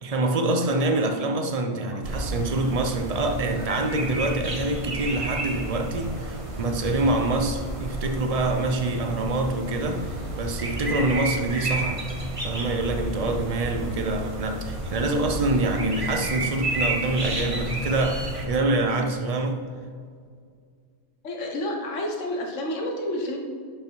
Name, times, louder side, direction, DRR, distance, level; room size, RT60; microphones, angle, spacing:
voice 1, 0.0-10.1 10.4-12.0 12.4-19.6, right 2 dB, 40° right, 5 dB, 0.5 m, -26 dB
sound 1, 2.0-18.5, right 2 dB, 25° right, 1.1 m, -31 dB
voice 2, 21.2-23.4, left 1 dB, 55° left, 1 dB, 1.5 m, -29 dB
11.0 x 5.4 x 4.6 m, 2.1 s
omnidirectional pair, 1.5 m